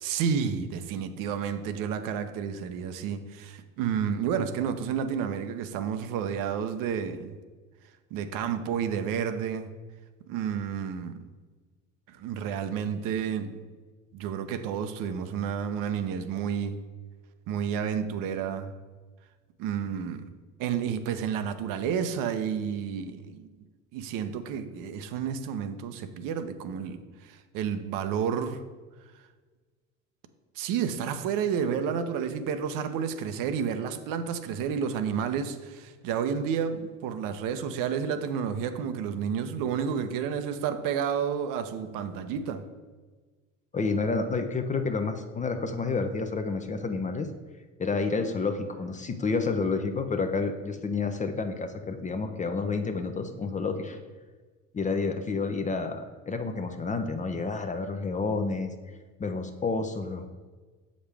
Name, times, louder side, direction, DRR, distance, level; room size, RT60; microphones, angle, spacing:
voice 1, 0.0-7.4 8.1-9.7 10.3-11.2 12.1-13.6 14.1-16.8 17.5-18.7 19.6-20.3 20.6-23.5 23.9-28.6 30.6-42.6, right 7 dB, 60° right, 0.7 m, -30 dB
voice 2, 43.7-47.3 47.8-54.0 54.7-58.7 59.2-60.3, left 4 dB, 20° left, 0.6 m, -29 dB
7.0 x 5.1 x 3.4 m
hypercardioid pair, 80°, 37 cm